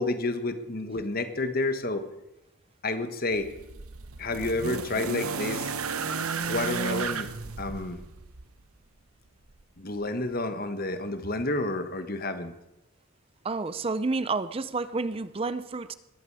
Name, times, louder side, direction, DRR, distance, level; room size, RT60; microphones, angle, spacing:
voice 1, 0.0-2.1 2.8-3.5 4.2-5.7 6.5-7.3 7.6-8.0 9.8-12.5, left 2 dB, 45° left, 9 dB, 1.4 m, -30 dB
sound 1, 3.3-8.5 9.6-9.7, right 5 dB, 85° right, 1.0 m, -33 dB
voice 2, 13.4-15.9, right 3 dB, 25° right, 14 dB, 0.5 m, -30 dB
20.5 x 14.0 x 4.9 m, 0.96 s
head